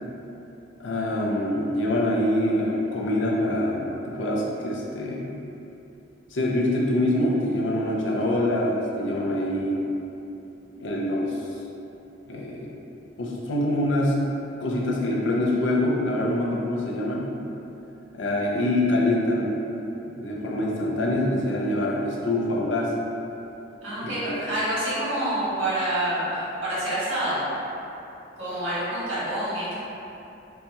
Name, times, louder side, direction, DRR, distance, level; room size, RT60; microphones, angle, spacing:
voice 1, 0.8-5.2 6.3-9.8 10.7-11.4 12.3-12.7 13.2-14.2 14.6-17.3 18.1-19.5 20.0-22.9 24.0-24.4, left 1 dB, 70° left, -3 dB, 0.6 m, -25 dB
voice 2, 23.8-27.4 28.4-29.9, right 1 dB, 85° right, -10 dB, 1.4 m, -27 dB
4.3 x 2.3 x 2.8 m, 2.9 s
head